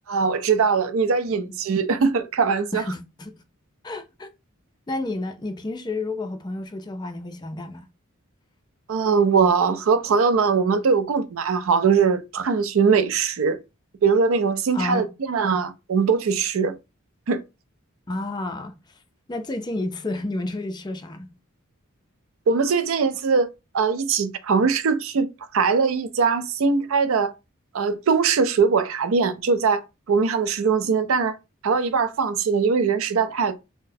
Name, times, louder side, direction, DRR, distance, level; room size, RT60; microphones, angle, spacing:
voice 1, 0.1-2.8 8.9-13.6 14.0-16.7 17.3-17.4 22.5-23.5 23.7-25.3 25.5-27.3 27.7-29.8 30.1-31.4 31.6-33.6, right 5 dB, 70° right, 0.4 m, -21 dB
voice 2, 2.7-3.3 3.8-4.3 4.9-7.9 14.7-15.1 18.1-18.7 19.3-21.3, left 2 dB, 20° left, 0.4 m, -30 dB
3.9 x 2.1 x 2.6 m
head